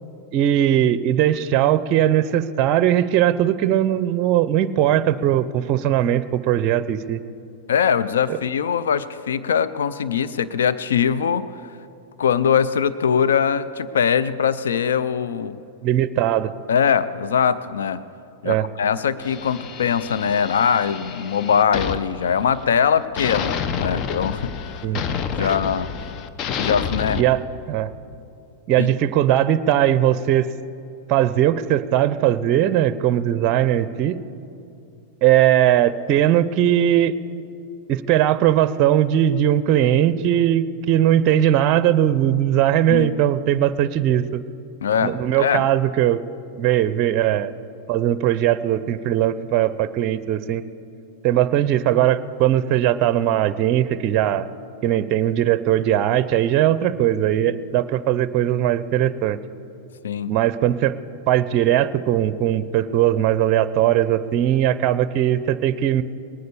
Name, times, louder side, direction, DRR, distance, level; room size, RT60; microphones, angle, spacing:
voice 1, 0.3-7.2 8.3-8.4 15.8-16.5 18.4-18.7 24.8-25.0 25.4-25.6 27.1-27.4 27.7-27.9 28.7-30.5 31.1-34.2 35.2-37.2 37.9-44.4 45.0-46.2 46.6-47.5 47.9-50.6 51.2-54.5 54.8-59.4 60.3-60.9 61.3-66.0, right 11 dB, 45° right, 15 dB, 0.5 m, -19 dB
voice 2, 7.7-11.5 12.2-15.6 16.7-18.0 18.4-24.7 25.3-25.9 26.6-27.2 28.8-28.9 42.9-43.1 44.8-45.6 60.0-60.3, left 7 dB, 80° left, 14 dB, 0.5 m, -21 dB
sound 1, 19.2-22.8 23.2-27.2, left 7 dB, 40° left, 0.8 m, -29 dB
20.0 x 9.5 x 6.9 m, 2.7 s
hypercardioid pair, 105°, 0 cm